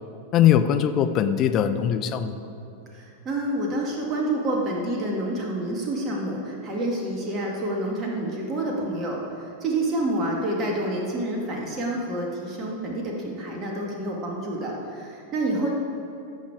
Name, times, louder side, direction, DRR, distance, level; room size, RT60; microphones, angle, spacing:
voice 1, 0.3-2.3, left 9 dB, 35° left, 9 dB, 0.6 m, -21 dB
voice 2, 2.9-15.7, right 1 dB, 30° right, -1 dB, 1.8 m, -28 dB
16.0 x 6.4 x 4.8 m, 2.7 s
figure-of-eight pair, 90°, 0 cm